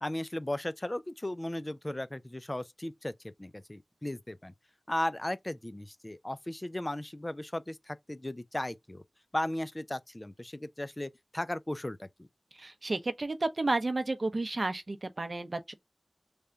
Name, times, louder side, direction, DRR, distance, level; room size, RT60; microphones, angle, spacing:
voice 1, 0.0-3.1 3.4-4.5 4.9-9.0 9.3-12.3, left 1 dB, 30° left, 0.4 m, -36 dB
voice 2, 12.6-15.7, right 2 dB, 60° right, 0.6 m, -32 dB
3.4 x 2.3 x 3.9 m
wide cardioid pair, 40°, 0 cm